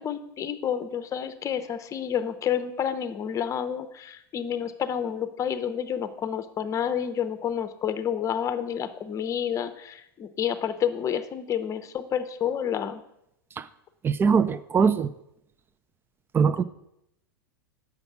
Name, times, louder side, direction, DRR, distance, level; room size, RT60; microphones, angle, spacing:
voice 1, 0.0-13.0, left 8 dB, 25° left, 10 dB, 0.8 m, -29 dB
voice 2, 14.0-15.1 16.3-16.6, right 6 dB, 20° right, 15 dB, 0.5 m, -21 dB
7.9 x 5.9 x 5.9 m, 0.79 s
hypercardioid pair, 100°, 12 cm